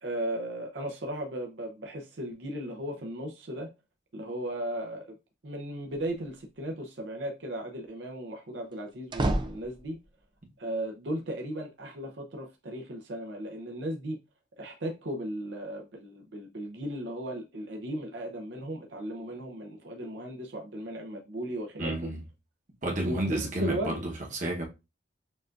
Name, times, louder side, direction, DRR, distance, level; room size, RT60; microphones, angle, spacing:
voice 1, 0.0-3.7 4.1-5.1 5.4-10.0 10.6-14.2 14.6-22.1 23.0-24.0, right 1 dB, 70° right, 0.7 m, -36 dB
sound 1, 5.9-6.5 8.7-10.2, right 1 dB, 25° right, 0.4 m, -32 dB
voice 2, 21.8-22.2 22.8-24.6, right 1 dB, 40° right, 1.1 m, -31 dB
6.5 x 2.5 x 2.5 m
head